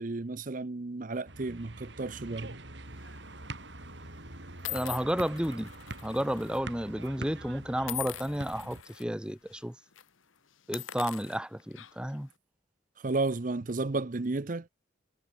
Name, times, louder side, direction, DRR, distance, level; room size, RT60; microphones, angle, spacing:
voice 1, 0.0-2.5 13.0-14.7, right 3 dB, 40° right, 0.7 m, -33 dB
sound 1, 1.3-8.8, right 2 dB, 65° right, 4.6 m, -44 dB
sound 2, 3.0-3.3 4.0-4.1 4.6-6.6 6.9-7.1 7.8-9.0 9.5-9.6 9.9-10.1 10.6-12.2, left 14 dB, 90° left, 1.4 m, -42 dB
Subway metro underground, 4.6-6.8 7.1-7.2 7.4-7.7 7.9-8.4 8.6-9.7, right 1 dB, 20° right, 4.1 m, -53 dB
voice 2, 4.7-5.7 6.0-9.8 10.7-12.3, equal, 5° right, 1.1 m, -32 dB
head